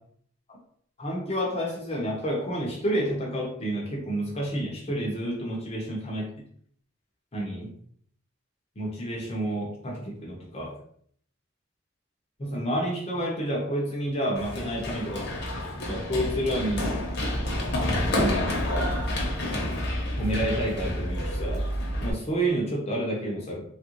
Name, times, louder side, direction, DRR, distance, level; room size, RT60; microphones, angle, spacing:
voice 1, 1.0-6.3 7.3-7.7 8.8-10.8 12.4-15.3 15.9-17.0 17.9-19.0 20.2-21.6 22.0-23.6, right 1 dB, 35° left, -2 dB, 0.7 m, -29 dB
Run, 14.3-22.1, left 1 dB, 60° left, 0.9 m, -29 dB
3.2 x 2.4 x 3.0 m, 0.62 s
head